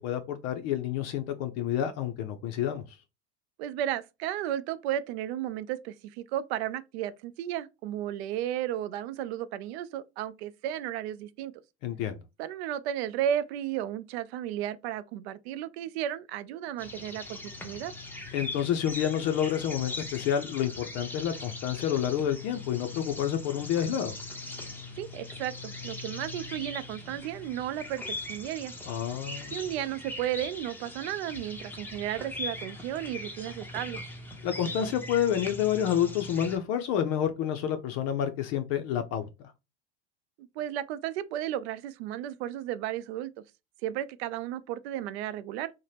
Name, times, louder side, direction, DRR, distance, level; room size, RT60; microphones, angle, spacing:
voice 1, 0.0-2.8 11.8-12.2 18.3-24.2 28.9-29.6 34.4-39.2, left 9 dB, 50° left, 0.5 m, -29 dB
voice 2, 3.6-11.5 12.4-17.9 25.0-28.0 28.3-28.7 29.5-34.0 40.4-43.3 43.8-45.7, right 11 dB, 65° right, 0.5 m, -34 dB
sound 1, 16.8-36.6, left 2 dB, 5° left, 0.5 m, -40 dB
2.7 x 2.1 x 3.2 m
hypercardioid pair, 100°, 34 cm